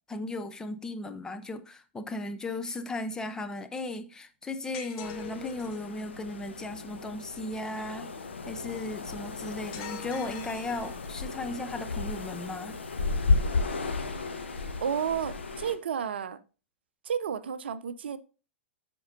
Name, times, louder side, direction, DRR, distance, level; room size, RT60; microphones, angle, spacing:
voice 1, 0.1-12.8, left 2 dB, 10° left, 0.5 m, -36 dB
sound 1, 4.7-5.9 9.7-11.3, left 8 dB, 40° left, 1.0 m, -44 dB
sound 2, 5.0-15.8, left 3 dB, 70° left, 1.2 m, -33 dB
voice 2, 14.8-16.4 17.0-18.2, right 8 dB, 60° right, 0.6 m, -31 dB
13.5 x 5.2 x 2.6 m
figure-of-eight pair, 105°, 6 cm